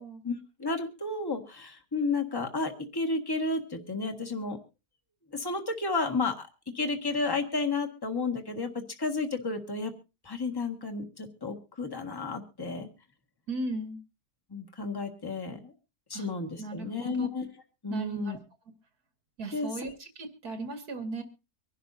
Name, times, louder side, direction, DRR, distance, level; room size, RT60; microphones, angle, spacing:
voice 1, 0.2-4.6 5.3-6.5 6.7-9.9 10.2-12.9 14.5-15.7 16.1-17.5 17.8-18.4 19.5-19.8, left 3 dB, 15° left, 4 dB, 1.6 m, -32 dB
voice 2, 13.5-14.0 16.1-16.3 16.6-17.3 17.9-18.4 19.4-21.2, right 2 dB, 70° right, 5 dB, 2.6 m, -37 dB
24.5 x 11.5 x 2.7 m, 0.30 s
omnidirectional pair, 1.7 m